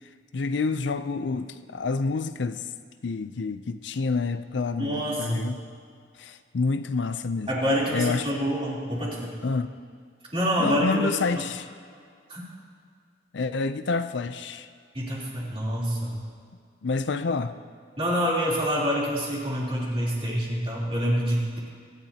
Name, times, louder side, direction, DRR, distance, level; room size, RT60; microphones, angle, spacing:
voice 1, 0.3-2.6 3.0-5.6 6.2-7.5 7.9-8.2 9.4-9.7 10.6-11.7 13.3-14.7 16.8-17.6, left 4 dB, 70° left, 11 dB, 0.5 m, -28 dB
voice 2, 4.8-5.4 7.5-9.4 10.3-11.1 12.3-12.4 14.9-16.2 18.0-21.6, equal, 30° right, -6 dB, 3.4 m, -26 dB
24.0 x 11.0 x 2.9 m, 2.1 s
head